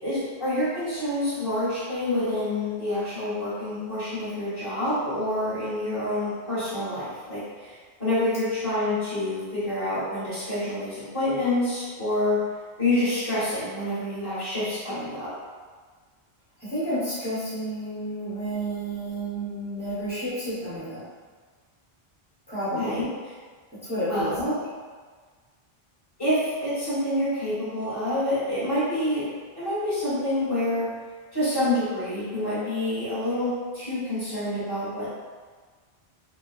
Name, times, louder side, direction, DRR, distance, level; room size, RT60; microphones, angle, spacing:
voice 1, 0.0-12.4 12.8-15.3 22.8-23.3 24.1-24.6 26.2-29.3 29.5-30.9 31.3-35.1, left 1 dB, 20° left, -13 dB, 1.5 m, -27 dB
voice 2, 16.6-21.0 22.5-23.0 23.9-24.3, right 1 dB, 10° right, -11 dB, 0.9 m, -30 dB
3.0 x 2.3 x 2.4 m, 1.5 s
omnidirectional pair, 1.1 m